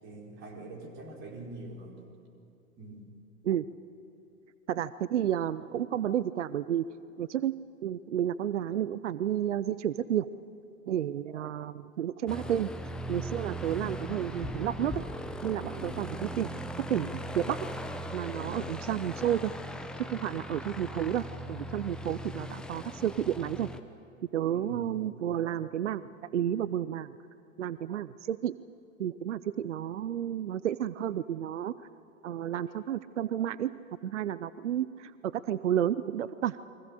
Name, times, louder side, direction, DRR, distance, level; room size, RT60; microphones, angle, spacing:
voice 1, 0.0-2.0 2.8-3.0 15.6-16.0 18.3-18.6 24.4-25.0, right 2 dB, 25° right, 0 dB, 4.7 m, -44 dB
voice 2, 4.7-6.8 7.2-7.6 7.8-10.3 10.9-12.7 13.1-15.0 15.4-16.5 16.8-17.7 18.1-19.5 20.0-23.7 24.3-26.0 26.3-27.2 27.6-28.5 29.0-31.7 32.2-33.7 34.0-36.6, right 10 dB, 60° right, 16 dB, 0.7 m, -31 dB
Aircraft, 12.3-23.8, equal, ahead, 0.8 m, -39 dB
29.5 x 24.0 x 6.7 m, 2.7 s
figure-of-eight pair, 110°, 41 cm